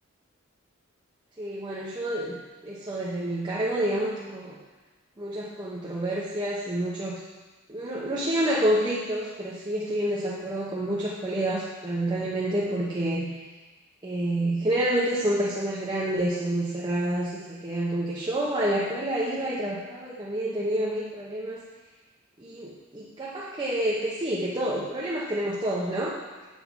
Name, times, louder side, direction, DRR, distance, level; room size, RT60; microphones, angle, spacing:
voice 1, 1.4-2.4 2.6-4.6 5.2-7.2 7.7-13.4 14.0-21.6 22.4-26.2, right 1 dB, 20° right, -5 dB, 1.1 m, -28 dB
8.2 x 5.7 x 7.0 m, 1.3 s
head